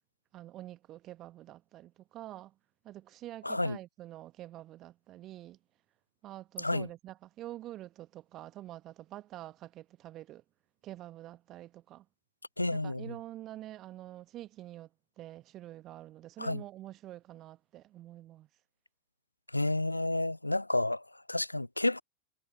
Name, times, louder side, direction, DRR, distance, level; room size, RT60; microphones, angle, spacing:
voice 1, 0.3-2.5 2.8-5.6 6.2-10.4 10.8-12.0 12.7-14.9 15.2-18.5, right 14 dB, 35° right, 0.9 m, -47 dB
voice 2, 3.4-3.8 6.6-6.9 12.6-13.1 16.4-16.6 19.5-22.0, left 2 dB, 85° left, 0.4 m, -31 dB
figure-of-eight pair, 90°, 0 cm